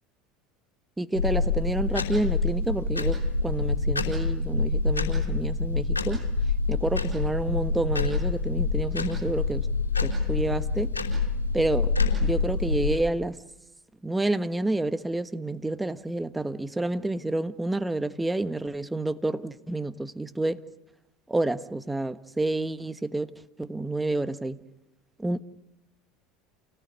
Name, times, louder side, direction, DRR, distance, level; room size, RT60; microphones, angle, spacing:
voice 1, 1.0-6.2 6.7-9.7 10.0-10.9 11.5-13.4 14.0-20.6 21.3-23.3 23.6-24.6 25.2-25.4, right 2 dB, 10° right, 1.3 m, -29 dB
sound 1, 1.1-13.0, left 4 dB, 90° left, 4.5 m, -26 dB
29.0 x 18.5 x 9.8 m
figure-of-eight pair, 75°, 0 cm